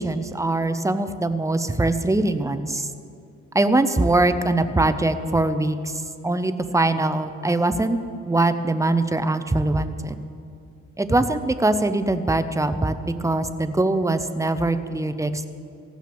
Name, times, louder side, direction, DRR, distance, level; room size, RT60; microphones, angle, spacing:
voice 1, 0.0-2.9 3.5-5.9 6.2-8.0 8.3-10.2 11.0-15.5, right 2 dB, 10° right, 11 dB, 0.6 m, -22 dB
15.5 x 6.3 x 6.9 m, 2.5 s
cardioid pair, 90°, 30 cm